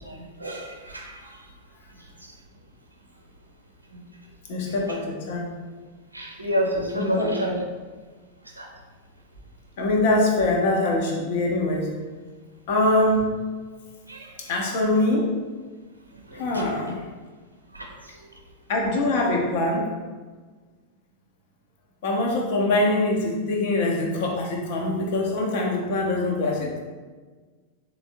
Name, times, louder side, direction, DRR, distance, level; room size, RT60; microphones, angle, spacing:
voice 1, 0.1-1.3 3.9-4.0 6.1-7.6 8.6-8.7 14.1-14.3 16.3-16.7 17.7-17.9, equal, 80° right, 1 dB, 0.4 m, -29 dB
voice 2, 4.5-5.5 6.9-7.3 9.8-11.9 12.7-13.3 14.5-15.3 16.4-17.0 18.7-19.9 22.0-26.8, left 2 dB, 50° left, -1 dB, 0.8 m, -23 dB
3.5 x 3.2 x 2.6 m, 1.4 s
figure-of-eight pair, 90°, 0 cm